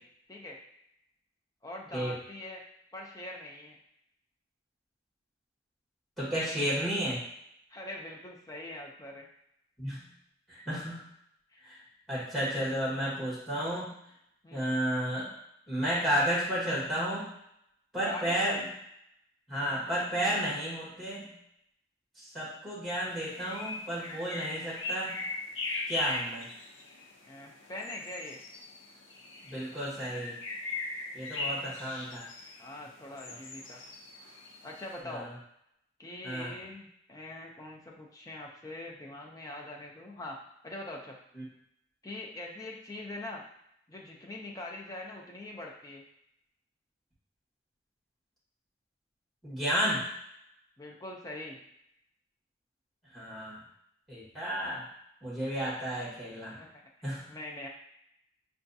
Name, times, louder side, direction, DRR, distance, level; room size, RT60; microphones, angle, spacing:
voice 1, 1.6-2.6 2.9-3.8 7.7-9.3 11.5-11.6 14.4-14.7 18.0-18.6 27.3-28.4 31.4-31.7 32.6-33.8 34.6-35.3 36.0-40.4 40.6-41.2 42.0-43.5 43.9-46.0 50.8-51.6 56.5-56.8 57.3-57.7, left 1 dB, 20° left, -1 dB, 0.5 m, -43 dB
voice 2, 6.2-7.2 9.8-10.0 10.5-11.0 11.6-11.8 12.1-13.9 14.5-15.3 15.7-17.3 17.9-18.7 19.5-21.3 22.2-25.2 25.9-26.5 29.5-30.4 31.1-32.3 33.2-33.3 35.1-35.3 36.2-36.5 41.4-41.5 49.4-50.1 53.1-53.6 54.1-54.8 55.2-56.6 57.0-57.3, equal, ahead, -8 dB, 1.4 m, -32 dB
sound 1, 23.3-35.0, left 2 dB, 80° left, 0.6 m, -39 dB
5.6 x 2.3 x 2.6 m, 0.77 s
head